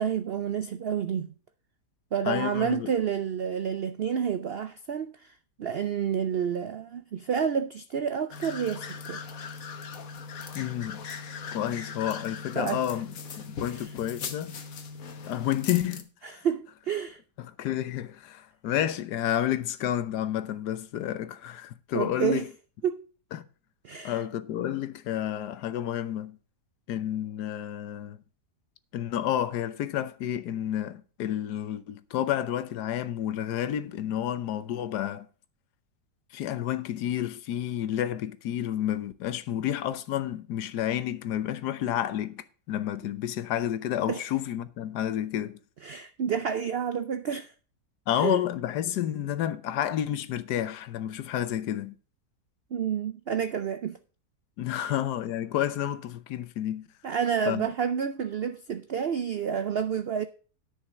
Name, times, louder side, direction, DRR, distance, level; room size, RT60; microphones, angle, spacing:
voice 1, 0.0-1.3 2.1-5.3 5.6-9.2 12.6-12.8 13.7-13.9 16.2-17.2 21.9-22.5 22.8-23.0 23.8-24.2 44.1-44.2 45.8-47.5 48.2-48.4 52.7-54.0 54.8-54.9 57.0-60.3, right 7 dB, 75° right, 0.5 m, -29 dB
voice 2, 2.2-2.9 10.5-11.1 11.5-13.1 13.5-14.6 15.3-16.4 17.4-22.5 23.3-23.4 24.0-26.4 26.9-28.2 28.9-35.3 36.3-45.6 48.1-52.0 54.6-56.9 57.5-57.7, left 11 dB, 80° left, 1.4 m, -30 dB
sound 1, 8.3-16.0, left 5 dB, 60° left, 1.4 m, -39 dB
10.0 x 5.7 x 6.3 m
omnidirectional pair, 1.7 m